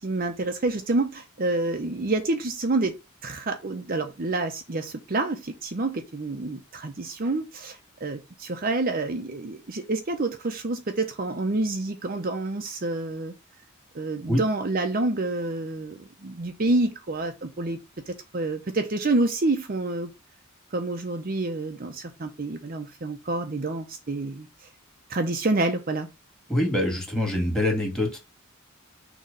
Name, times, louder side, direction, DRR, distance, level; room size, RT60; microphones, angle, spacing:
voice 1, 0.0-2.9 3.2-13.3 13.9-17.8 18.1-20.1 20.7-24.7 25.1-26.1, right 2 dB, 45° right, 0.7 m, -28 dB
voice 2, 26.5-28.2, left 1 dB, 5° left, 2.3 m, -24 dB
6.4 x 3.1 x 5.4 m
head